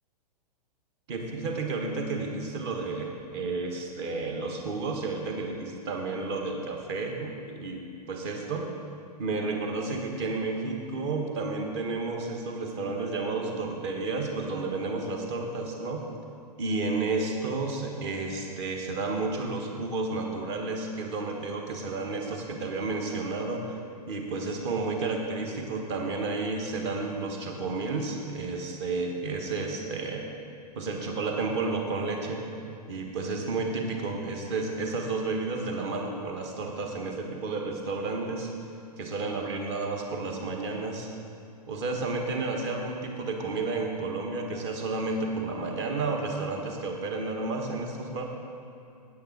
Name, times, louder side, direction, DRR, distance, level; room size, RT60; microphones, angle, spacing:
voice 1, 1.1-8.7 9.2-16.0 16.6-23.8 24.1-30.3 30.7-32.4 32.9-38.5 39.0-41.1 41.7-48.2, right 3 dB, 45° right, 2 dB, 1.4 m, -31 dB
9.4 x 8.5 x 4.6 m, 2.5 s
figure-of-eight pair, 105°, 21 cm